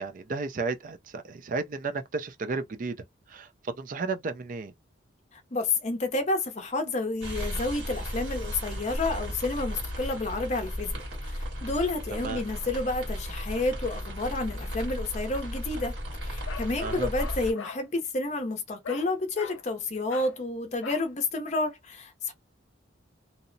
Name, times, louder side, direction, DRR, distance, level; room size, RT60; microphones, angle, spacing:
voice 1, 0.0-3.0 3.3-3.5 3.8-4.7 12.2-12.4 16.8-17.1, right 4 dB, 45° right, 0.4 m, -33 dB
voice 2, 5.3-16.0 16.2-22.3, left 2 dB, 35° left, 0.5 m, -30 dB
sound 1, 7.2-17.5, equal, 80° right, 1.5 m, -35 dB
Bark, 16.5-17.8 18.8-19.1 19.4-19.6 20.1-20.4 20.8-21.1, left 6 dB, 90° left, 0.5 m, -41 dB
2.7 x 2.0 x 2.5 m
head